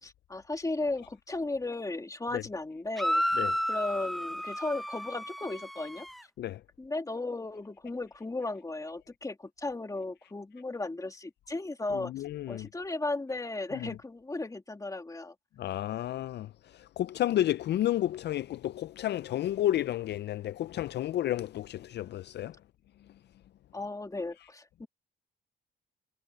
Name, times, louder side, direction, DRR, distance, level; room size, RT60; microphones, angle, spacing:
voice 1, 0.0-3.2 3.7-6.1 6.8-12.1 12.5-15.3 23.7-24.9, left 2 dB, 15° left, 2.3 m, -35 dB
sound 1, 3.0-6.2, equal, ahead, 0.7 m, -32 dB
voice 2, 11.9-12.7 13.8-13.9 15.6-22.5, left 13 dB, 60° left, 0.4 m, -31 dB
cardioid pair, 90°, 20 cm